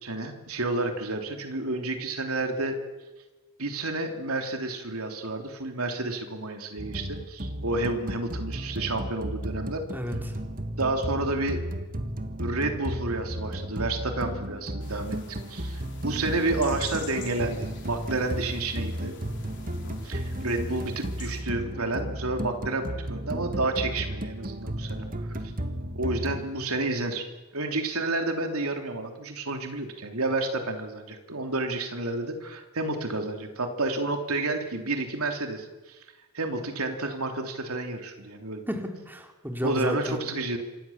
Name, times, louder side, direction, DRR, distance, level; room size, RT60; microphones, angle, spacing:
voice 1, 0.0-2.8 3.6-9.8 10.8-11.6 12.4-15.2 15.5-19.1 20.0-25.4 25.9-27.3 27.5-36.0 36.3-38.6 39.6-40.6, right 2 dB, 80° right, 5 dB, 3.2 m, -30 dB
sound 1, 6.8-26.4, right 1 dB, 40° right, 2.0 m, -34 dB
voice 2, 9.9-10.3 38.7-40.3, equal, 10° right, 3 dB, 3.4 m, -32 dB
sound 2, 14.8-21.4, left 6 dB, 55° left, 4.6 m, -48 dB
27.0 x 26.0 x 7.3 m, 1.2 s
head